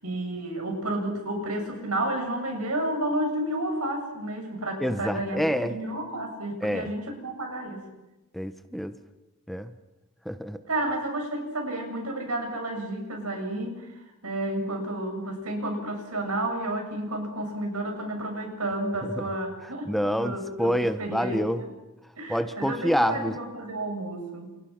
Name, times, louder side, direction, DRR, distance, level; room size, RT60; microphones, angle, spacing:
voice 1, 0.0-7.9 10.7-21.7 22.2-24.5, right 1 dB, 75° right, 4 dB, 7.3 m, -31 dB
voice 2, 4.8-5.8 6.6-6.9 8.3-8.9 9.5-9.7 10.2-10.6 19.2-19.3 19.9-21.6 22.3-23.3, equal, ahead, 9 dB, 1.0 m, -27 dB
30.0 x 29.0 x 6.0 m, 1.0 s
head